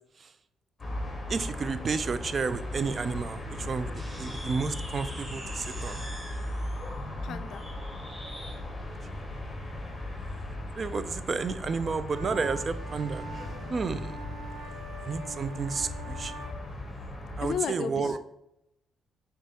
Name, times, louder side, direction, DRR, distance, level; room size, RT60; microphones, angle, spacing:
sound 1, 0.8-17.5, left 1 dB, 25° left, 1.0 m, -38 dB
voice 1, 1.3-3.9 4.2-6.0 10.7-13.2 13.7-14.2 15.0-16.3 17.4-18.2, right 5 dB, 40° right, 12 dB, 0.3 m, -31 dB
sound 2, 3.9-8.6, equal, 10° right, 0.8 m, -44 dB
voice 2, 7.2-7.6 17.4-18.2, left 8 dB, 70° left, 11 dB, 0.3 m, -33 dB
sound 3, 12.1-16.6, right 2 dB, 80° right, 1.1 m, -44 dB
6.0 x 2.3 x 2.8 m, 0.84 s
cardioid pair, 90°, 0 cm